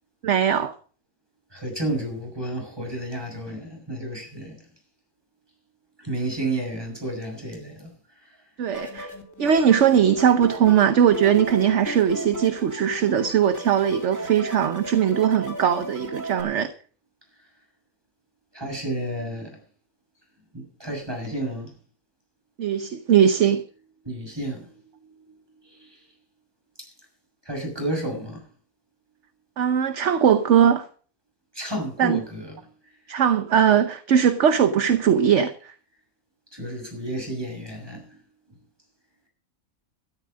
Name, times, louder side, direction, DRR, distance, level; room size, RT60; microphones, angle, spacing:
voice 1, 0.2-0.7 8.6-9.1 9.4-16.7 22.6-23.6 29.6-30.9 32.0-32.2 33.1-35.7, right 8 dB, 60° right, 1.1 m, -20 dB
voice 2, 1.5-4.6 6.0-7.9 8.2-8.4 18.5-19.6 20.5-21.7 24.0-26.0 27.4-28.4 31.5-32.5 36.5-38.2, right 1 dB, 15° right, 6.4 m, -31 dB
sound 1, 8.7-16.4, right 1 dB, 10° left, 2.4 m, -36 dB
13.0 x 12.5 x 5.2 m
omnidirectional pair, 1.5 m